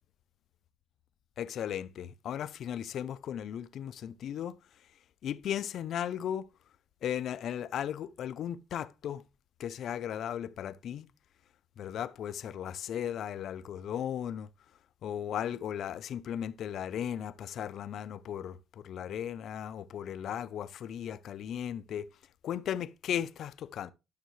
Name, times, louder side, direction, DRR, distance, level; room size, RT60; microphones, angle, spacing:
voice 1, 1.4-4.6 5.2-6.5 7.0-9.2 9.6-11.1 11.8-14.5 15.0-22.1 22.4-23.9, left 9 dB, 70° left, 0.5 m, -36 dB
11.5 x 6.4 x 3.1 m
cardioid pair, 90°, 0 cm